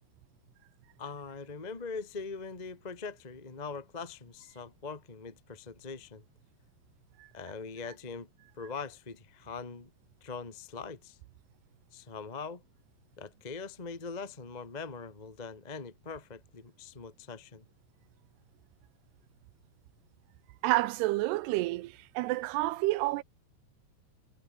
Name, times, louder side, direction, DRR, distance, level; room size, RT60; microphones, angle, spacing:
voice 1, 1.0-6.2 7.3-8.3 8.6-9.9 10.2-11.2 11.9-12.6 13.2-17.6, left 4 dB, 20° left, 1.2 m, -42 dB
voice 2, 20.6-23.2, right 19 dB, 80° right, 2.7 m, -29 dB
omnidirectional pair, 4.8 m